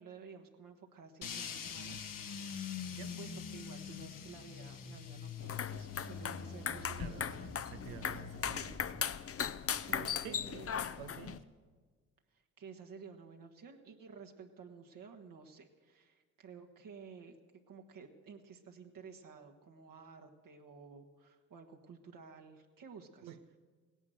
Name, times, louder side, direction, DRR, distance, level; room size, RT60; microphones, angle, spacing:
voice 1, 0.0-8.6 9.9-11.0 12.3-17.4 17.7-23.3, right 5 dB, 65° right, 2 dB, 1.6 m, -53 dB
sound 1, 1.2-11.4, left 6 dB, 60° left, 1.4 m, -46 dB
sound 2, 5.4-11.4, left 8 dB, 40° left, 0.7 m, -38 dB
voice 2, 7.0-9.0 10.2-10.7 10.9-11.5 23.2-23.6, right 9 dB, 90° right, 8 dB, 1.0 m, -50 dB
17.0 x 11.0 x 7.9 m, 1.5 s
supercardioid pair, 55°, 36 cm